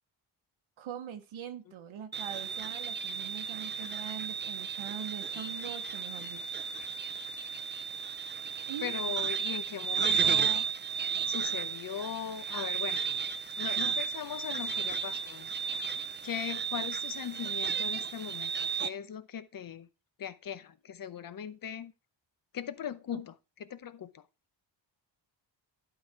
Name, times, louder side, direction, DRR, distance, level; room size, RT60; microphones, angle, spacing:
voice 1, 0.8-6.6 8.7-8.9 23.1-23.2, right 9 dB, 85° right, 0.9 m, -43 dB
sound 1, 2.1-18.9, right 6 dB, 25° right, 0.4 m, -33 dB
voice 2, 8.8-13.0 13.6-19.9 20.2-21.9 22.5-24.3, left 8 dB, 45° left, 0.7 m, -40 dB
11.5 x 3.9 x 4.6 m
wide cardioid pair, 125°, 47 cm